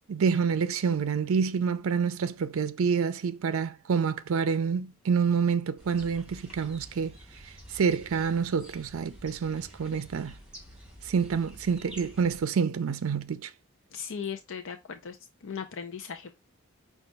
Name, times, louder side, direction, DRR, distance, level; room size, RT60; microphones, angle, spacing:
voice 1, 0.1-7.1 7.7-10.3 11.0-13.5, right 6 dB, 70° right, 0.4 m, -27 dB
sound 1, 5.8-12.4, equal, 5° right, 2.0 m, -49 dB
voice 2, 13.9-15.2 15.4-16.4, left 7 dB, 65° left, 0.5 m, -37 dB
5.5 x 2.4 x 4.0 m
head